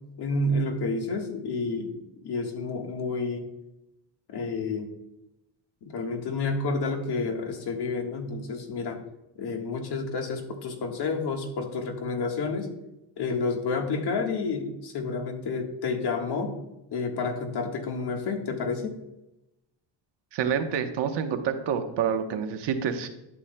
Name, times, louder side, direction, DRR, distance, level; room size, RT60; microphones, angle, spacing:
voice 1, 0.2-1.9 2.2-3.5 4.3-4.9 5.8-9.0 9.4-12.7 13.2-16.6 16.9-18.9, left 3 dB, 60° left, 3 dB, 1.5 m, -30 dB
voice 2, 20.3-23.1, right 7 dB, 70° right, 7 dB, 1.0 m, -28 dB
11.5 x 7.0 x 2.2 m, 0.91 s
cardioid pair, 135°, 44 cm